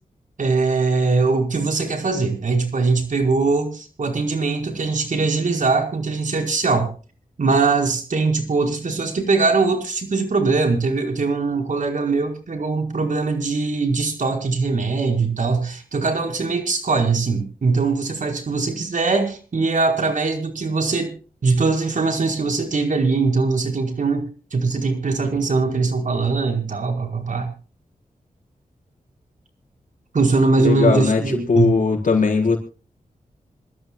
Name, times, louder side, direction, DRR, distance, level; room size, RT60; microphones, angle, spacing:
voice 1, 0.4-6.9 7.4-21.1 21.4-24.2 24.5-27.5 30.1-31.7, right 4 dB, 65° right, 3 dB, 4.8 m, -21 dB
voice 2, 30.6-31.2 31.5-32.6, left 4 dB, 70° left, 1 dB, 4.7 m, -18 dB
26.5 x 13.0 x 2.3 m, 0.36 s
wide cardioid pair, 80°, 14 cm